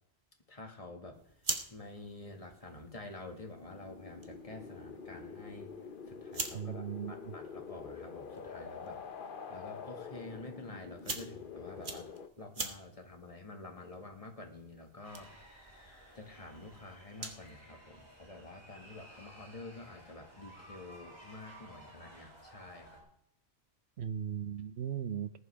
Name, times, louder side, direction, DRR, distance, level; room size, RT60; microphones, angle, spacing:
voice 1, 0.5-1.3 1.7-5.7 6.1-9.0 9.5-12.1 12.4-15.7 16.1-23.1, left 2 dB, 35° left, 2.0 m, -49 dB
sound 1, 1.1-17.5, right 3 dB, 50° right, 1.5 m, -46 dB
sound 2, 3.5-12.3, left 6 dB, 55° left, 1.0 m, -46 dB
voice 2, 6.5-7.4 24.0-25.4, right 9 dB, 80° right, 1.0 m, -38 dB
sound 3, 15.0-23.0, right 1 dB, 25° right, 4.6 m, -55 dB
19.5 x 11.0 x 3.5 m
omnidirectional pair, 1.1 m